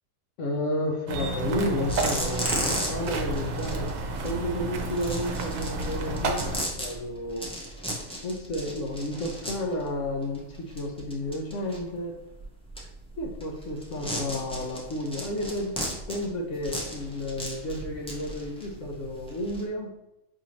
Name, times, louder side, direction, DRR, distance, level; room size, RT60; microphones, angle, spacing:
voice 1, 0.4-4.0 4.2-7.5 8.2-12.2 13.2-19.9, left 1 dB, 65° left, 3 dB, 0.9 m, -32 dB
sound 1, 1.1-6.6, right 3 dB, 70° right, 1.0 m, -31 dB
sound 2, 1.5-1.6 1.8-19.6, equal, 10° left, 0.4 m, -35 dB
4.8 x 2.6 x 3.0 m, 0.86 s
omnidirectional pair, 1.5 m